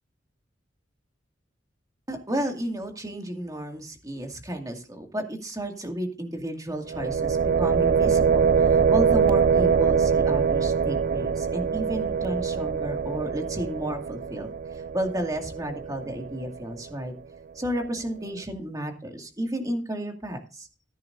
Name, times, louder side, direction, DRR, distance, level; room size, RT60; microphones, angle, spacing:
voice 1, 2.1-14.5 14.9-17.1 17.6-20.7, right 1 dB, 20° right, 3 dB, 2.2 m, -32 dB
sound 1, 6.9-16.7, right 6 dB, 50° right, 0.4 m, -23 dB
14.5 x 10.5 x 2.7 m, 0.32 s
head